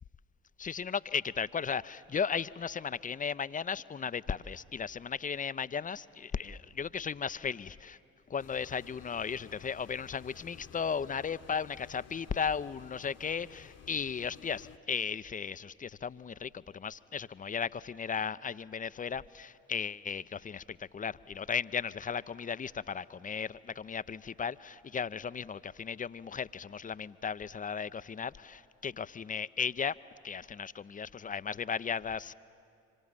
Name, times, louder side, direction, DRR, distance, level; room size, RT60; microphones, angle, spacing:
voice 1, 0.6-8.0 8.3-30.0 30.2-32.3, left 6 dB, 20° left, 16 dB, 0.6 m, -36 dB
sound 1, 8.4-14.8, left 7 dB, 45° left, 1.2 m, -54 dB
26.5 x 24.0 x 8.9 m, 2.4 s
figure-of-eight pair, 40°, 36 cm